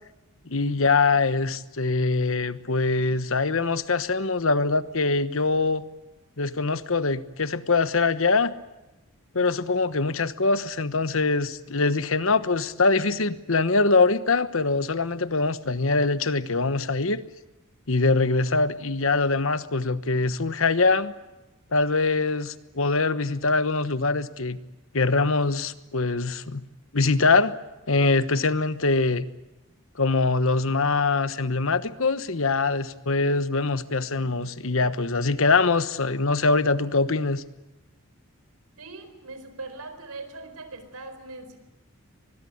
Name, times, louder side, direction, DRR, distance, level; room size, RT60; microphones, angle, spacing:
voice 1, 0.5-5.8 6.4-8.5 9.3-17.2 17.9-21.1 21.7-24.6 24.9-26.7 26.9-27.5 27.9-29.3 30.0-37.4, left 3 dB, 65° left, 13 dB, 1.2 m, -23 dB
voice 2, 38.8-41.6, right 3 dB, 85° right, 9 dB, 4.4 m, -40 dB
24.0 x 21.0 x 9.4 m, 1.0 s
head